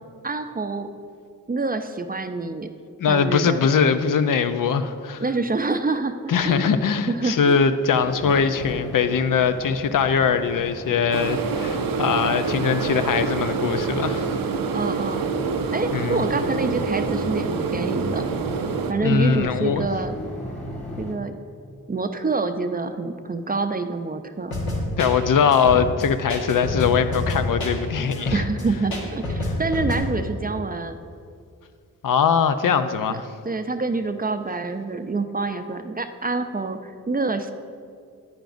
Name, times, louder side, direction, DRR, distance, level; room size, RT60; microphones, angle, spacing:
voice 1, 0.2-0.9 1.5-2.7 3.0-3.7 5.2-6.8 7.1-7.7 14.7-15.3 15.7-18.3 18.9-20.2 21.0-21.4 21.9-24.5 28.3-31.0 33.4-37.5, right 3 dB, 25° right, 8 dB, 0.5 m, -26 dB
voice 2, 3.0-5.2 6.3-14.3 15.9-16.3 19.0-19.9 25.0-28.4 32.0-33.3, left 6 dB, 65° left, 10 dB, 0.5 m, -21 dB
sound 1, 7.9-21.2, left 1 dB, 20° left, 1.5 m, -36 dB
sound 2, 11.1-18.9, right 5 dB, 70° right, 0.6 m, -26 dB
sound 3, 24.5-30.0, left 2 dB, 80° left, 1.6 m, -28 dB
10.0 x 9.2 x 2.6 m, 2.2 s
cardioid pair, 50°, 35 cm